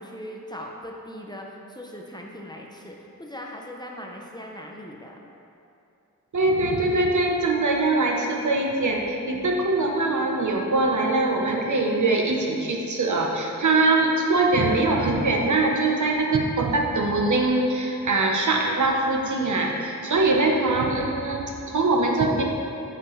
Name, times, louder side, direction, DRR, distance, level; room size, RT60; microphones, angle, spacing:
voice 1, 0.0-5.2, equal, 15° left, -1 dB, 0.6 m, -39 dB
voice 2, 6.3-22.4, right 2 dB, 65° right, 0 dB, 0.8 m, -22 dB
7.7 x 5.7 x 3.2 m, 2.7 s
wide cardioid pair, 75°, 32 cm